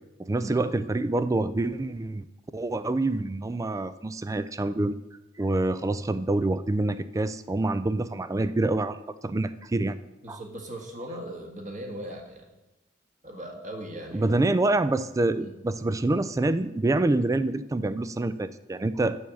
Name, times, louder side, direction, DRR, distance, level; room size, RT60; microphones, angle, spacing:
voice 1, 0.2-2.3 2.5-4.9 5.4-10.0 10.3-10.4 14.1-19.2, right 2 dB, 15° right, 13 dB, 0.3 m, -26 dB
voice 2, 10.2-12.4 13.2-14.5 15.4-15.5, right 1 dB, 40° right, 1 dB, 1.7 m, -39 dB
7.0 x 6.2 x 7.0 m, 1.0 s
head